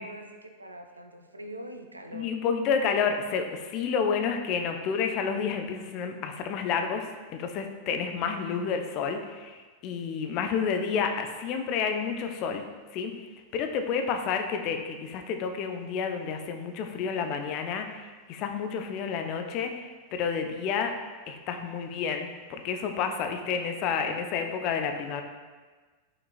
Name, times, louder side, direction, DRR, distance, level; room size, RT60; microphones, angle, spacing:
voice 1, 0.0-2.3, right 1 dB, 80° right, 6 dB, 0.3 m, -43 dB
voice 2, 2.1-12.6 12.9-13.1 13.5-20.9 21.3-25.2, left 6 dB, 40° left, 5 dB, 0.4 m, -30 dB
5.7 x 2.9 x 2.4 m, 1.4 s
figure-of-eight pair, 90°, 0 cm